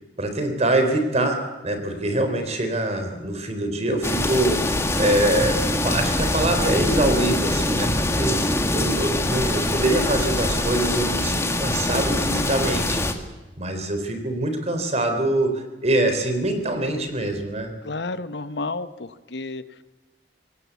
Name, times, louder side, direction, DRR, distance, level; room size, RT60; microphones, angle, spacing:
voice 1, 0.2-13.0 13.6-17.7, right 1 dB, 40° right, 7 dB, 3.8 m, -24 dB
sound 1, 4.0-13.1, left 1 dB, 15° left, 1.9 m, -23 dB
voice 2, 17.8-19.8, left 3 dB, 75° left, 13 dB, 1.0 m, -31 dB
23.5 x 18.5 x 8.4 m, 1.1 s
head